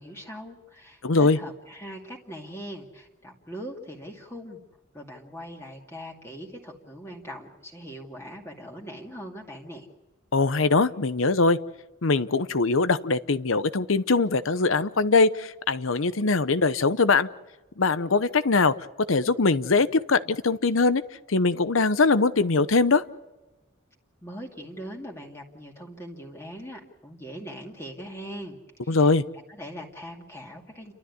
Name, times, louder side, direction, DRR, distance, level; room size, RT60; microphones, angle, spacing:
voice 1, 0.0-4.6 4.9-9.9 24.2-29.1 29.5-30.9, equal, 15° left, -1 dB, 2.3 m, -41 dB
voice 2, 1.0-1.4 10.3-11.6 12.0-17.3 17.8-18.8 19.1-21.0 21.3-23.0 28.9-29.2, left 3 dB, 85° left, 13 dB, 0.9 m, -22 dB
29.5 x 13.0 x 9.6 m, 1.1 s
head